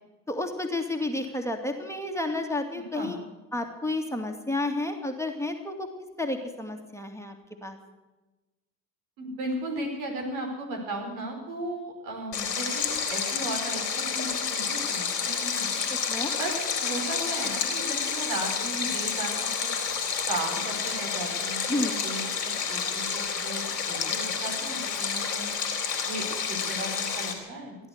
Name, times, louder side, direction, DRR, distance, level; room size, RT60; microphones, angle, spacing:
voice 1, 0.3-3.2 3.5-5.9 6.2-7.3 7.6-7.8 15.9-16.3 21.7-22.0, left 2 dB, 5° left, 3 dB, 2.3 m, -31 dB
voice 2, 9.2-15.7 16.4-16.5 16.8-19.7 20.3-25.5 26.1-27.8, right 1 dB, 70° right, 1 dB, 4.7 m, -36 dB
Stream, 12.3-27.3, left 6 dB, 90° left, 2.8 m, -30 dB
16.0 x 11.0 x 8.1 m, 1.1 s
hypercardioid pair, 60°, 47 cm